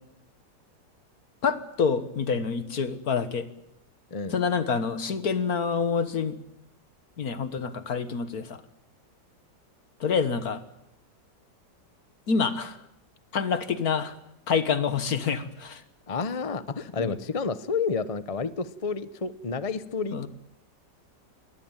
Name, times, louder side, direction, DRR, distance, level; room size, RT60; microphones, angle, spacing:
voice 1, 1.4-3.5 4.3-6.4 7.2-8.6 10.0-10.6 12.3-12.8 13.3-14.2 14.5-15.8 17.0-17.1 20.1-20.3, left 5 dB, 60° left, 12 dB, 1.9 m, -27 dB
voice 2, 16.1-20.3, left 4 dB, 30° left, 14 dB, 0.7 m, -30 dB
22.5 x 19.0 x 9.1 m, 0.83 s
omnidirectional pair, 1.9 m